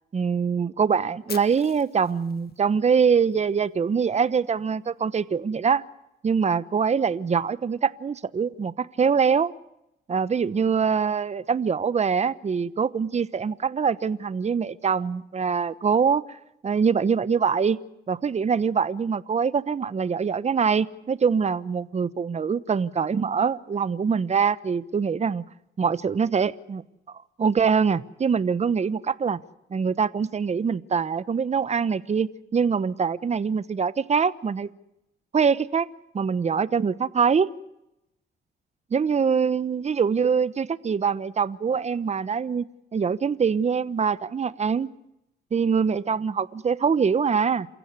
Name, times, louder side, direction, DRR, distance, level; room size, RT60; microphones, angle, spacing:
voice 1, 0.1-5.8 6.2-9.5 10.1-16.2 16.6-17.8 18.1-25.4 25.8-26.8 27.4-29.4 29.7-34.7 35.3-35.9 36.1-37.5 38.9-44.9 45.5-47.7, right 6 dB, 35° right, 17 dB, 1.1 m, -24 dB
Fire, 1.3-3.3, left 8 dB, 50° left, 2.1 m, -43 dB
28.0 x 15.5 x 9.7 m, 0.83 s
cardioid pair, 90°, 20 cm